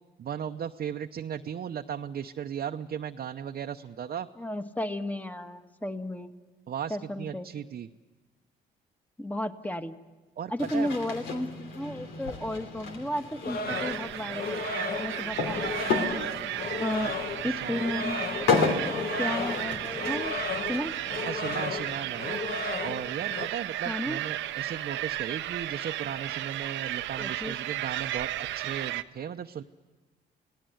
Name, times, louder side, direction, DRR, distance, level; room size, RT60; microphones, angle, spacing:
voice 1, 0.2-4.3 6.7-7.9 10.4-10.9 17.0-17.1 17.4-17.9 21.3-22.4 22.8-29.6, right 8 dB, 55° right, 4 dB, 0.8 m, -36 dB
voice 2, 4.4-6.3 6.9-7.5 9.2-9.9 10.5-16.2 16.8-17.1 17.4-20.3 20.7-20.9 23.8-24.2 27.2-27.6, left 1 dB, 10° left, 8 dB, 1.5 m, -34 dB
sound 1, 10.6-23.5, left 4 dB, 85° left, 3.1 m, -34 dB
sound 2, 13.4-23.5, left 4 dB, 50° left, 1.4 m, -35 dB
sound 3, 13.7-29.0, right 14 dB, 85° right, 0.8 m, -34 dB
28.5 x 18.0 x 7.9 m, 1.3 s
cardioid pair, 75°, 19 cm